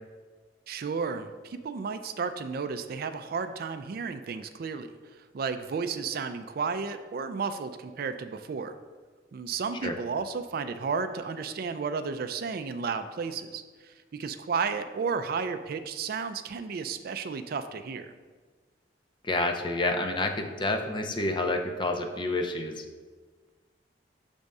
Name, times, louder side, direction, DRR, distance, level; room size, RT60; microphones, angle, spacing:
voice 1, 0.7-4.9 5.3-8.7 9.3-18.1, right 5 dB, 55° right, 9 dB, 0.4 m, -33 dB
voice 2, 19.2-22.8, left 2 dB, 25° left, 4 dB, 0.5 m, -29 dB
6.4 x 3.5 x 5.3 m, 1.4 s
head